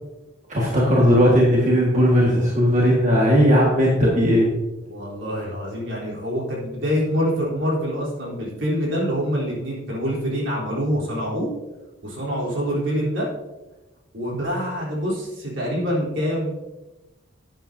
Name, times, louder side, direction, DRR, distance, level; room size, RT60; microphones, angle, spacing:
voice 1, 0.5-4.5, equal, 35° right, -4 dB, 1.7 m, -17 dB
voice 2, 4.9-11.5 12.0-13.3 14.1-16.5, equal, 65° right, -4 dB, 3.6 m, -25 dB
11.5 x 9.1 x 2.7 m, 1.1 s
head